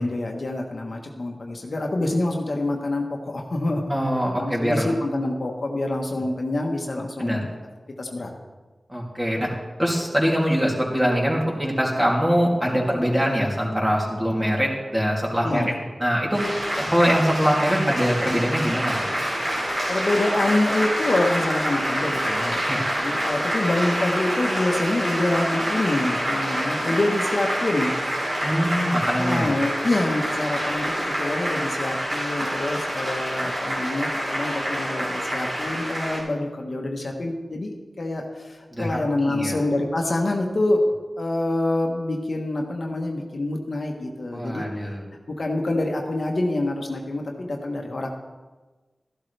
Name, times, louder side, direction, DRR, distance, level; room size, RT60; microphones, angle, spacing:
voice 1, 0.0-3.8 4.4-7.5 8.0-8.3 15.4-15.7 19.9-22.6 23.0-27.9 29.1-40.8 41.2-44.7 45.4-48.1, left 2 dB, 60° left, 1 dB, 1.3 m, -26 dB
voice 2, 3.9-4.9 7.2-7.4 8.9-9.5 9.8-15.6 16.0-16.4 16.8-19.1 22.7-22.8 28.4-29.5 38.7-39.5 44.3-45.0, equal, 15° right, -3 dB, 2.9 m, -23 dB
sound 1, 16.3-36.2, equal, 60° right, 3.6 m, -27 dB
13.0 x 12.0 x 3.4 m, 1.3 s
wide cardioid pair, 65°, 0 cm